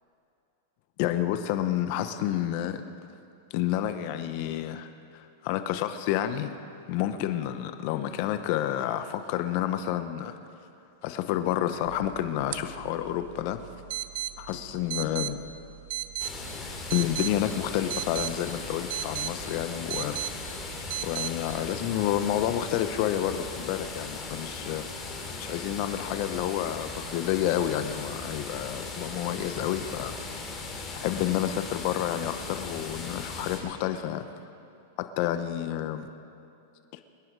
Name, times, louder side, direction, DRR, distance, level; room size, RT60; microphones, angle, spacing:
voice 1, 1.0-2.9 3.5-6.5 6.9-10.3 11.0-13.6 14.4-15.4 16.9-20.6 21.0-24.9 25.4-30.1 30.9-34.2 35.0-36.1, left 11 dB, 50° left, 9 dB, 1.0 m, -29 dB
sound 1, 11.8-21.3, right 13 dB, 60° right, 0.6 m, -37 dB
sound 2, 16.2-33.6, left 3 dB, 20° left, 2.9 m, -38 dB
25.0 x 11.0 x 4.8 m, 2.6 s
supercardioid pair, 150°, 0 cm